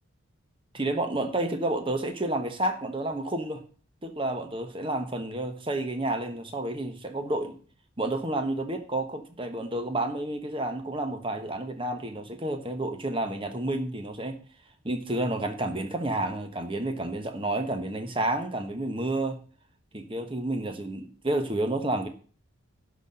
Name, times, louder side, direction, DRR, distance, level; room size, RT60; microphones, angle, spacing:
voice 1, 0.7-3.6 4.0-7.6 8.0-14.4 14.8-19.4 19.9-22.1, right 1 dB, 25° right, 6 dB, 1.1 m, -30 dB
11.5 x 4.2 x 7.6 m, 0.41 s
head